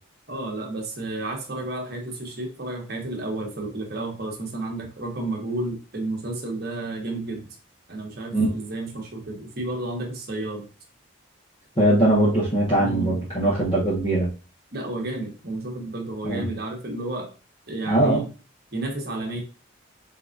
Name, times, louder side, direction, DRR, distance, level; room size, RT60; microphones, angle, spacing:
voice 1, 0.3-7.6 7.9-10.7 12.7-13.2 14.7-17.3 17.7-18.3 18.7-19.4, right 2 dB, 50° right, 1 dB, 1.3 m, -31 dB
voice 2, 11.8-14.3 16.2-16.4 17.9-18.2, right 1 dB, 25° left, -7 dB, 1.4 m, -21 dB
4.4 x 3.9 x 2.6 m, 0.35 s
head